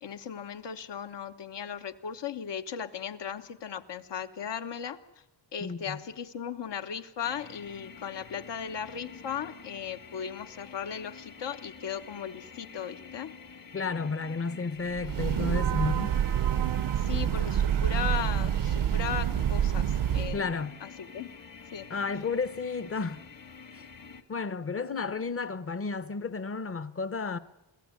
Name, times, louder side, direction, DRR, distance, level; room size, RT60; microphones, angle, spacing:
voice 1, 0.0-5.0 5.5-13.3 17.0-20.4 20.8-21.3 21.7-22.2, left 8 dB, 70° left, 1.2 m, -37 dB
voice 2, 5.6-6.0 13.7-16.2 20.3-20.8 21.9-23.2 23.7-23.9 24.3-27.4, left 4 dB, 30° left, 0.8 m, -32 dB
sound 1, 7.2-24.2, left 5 dB, 50° left, 1.6 m, -48 dB
Breathing / Train, 14.9-20.5, right 9 dB, 70° right, 0.7 m, -27 dB
23.5 x 16.0 x 9.5 m
wide cardioid pair, 155°, 44 cm